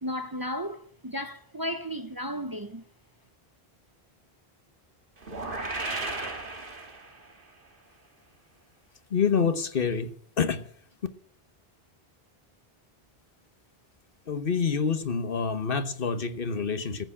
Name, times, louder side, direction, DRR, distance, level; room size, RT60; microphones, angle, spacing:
voice 1, 0.0-2.8, equal, 25° right, 0.7 m, -34 dB
sound 1, 5.2-7.4, right 2 dB, 60° right, 2.0 m, -34 dB
voice 2, 9.1-10.7 14.3-17.0, left 6 dB, 60° left, 1.2 m, -27 dB
14.5 x 8.2 x 8.4 m
omnidirectional pair, 1.0 m